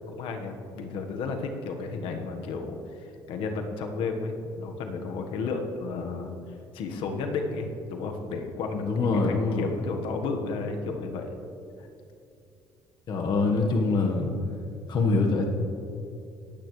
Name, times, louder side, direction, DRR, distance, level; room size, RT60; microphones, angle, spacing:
voice 1, 0.1-6.3 6.7-11.3, left 4 dB, 75° left, 4 dB, 1.4 m, -32 dB
voice 2, 8.8-9.7 13.1-14.3 14.9-15.4, left 3 dB, 55° left, 1 dB, 1.4 m, -24 dB
20.0 x 9.1 x 3.2 m, 2.7 s
cardioid pair, 100°, 9 cm